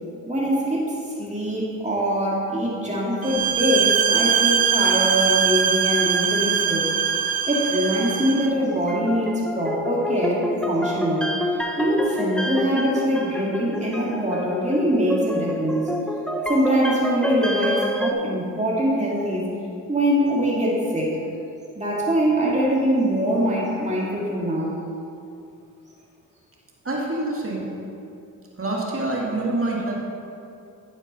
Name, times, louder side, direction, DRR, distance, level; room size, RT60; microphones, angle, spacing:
voice 1, 0.3-0.8 1.2-6.9 7.5-11.3 11.7-15.8 16.5-19.4 19.9-21.2 21.8-24.7, equal, 20° right, -5 dB, 2.1 m, -23 dB
sound 1, 3.2-8.5, right 8 dB, 80° right, 0.5 m, -22 dB
sound 2, 8.6-18.1, equal, ahead, 0.8 m, -28 dB
voice 2, 26.8-27.7 28.6-29.9, right 2 dB, 40° right, -3 dB, 2.0 m, -26 dB
9.3 x 5.2 x 5.3 m, 2.6 s
cardioid pair, 40°, 36 cm